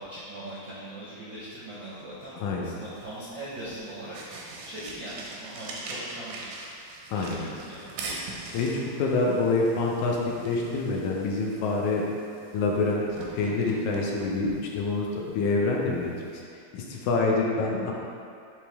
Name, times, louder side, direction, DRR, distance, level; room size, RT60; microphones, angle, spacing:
voice 1, 0.0-4.2 4.6-6.5 7.1-7.9, right 1 dB, 65° right, -9 dB, 1.2 m, -40 dB
voice 2, 2.4-2.8 7.1-7.5 8.5-10.2 10.4-12.0 12.5-13.1 13.3-16.1 16.7-17.9, left 3 dB, 75° left, -2 dB, 2.1 m, -26 dB
sound 1, 2.8-16.4, right 2 dB, 85° right, 2.3 m, -43 dB
9.7 x 3.4 x 3.5 m, 2.4 s
omnidirectional pair, 3.5 m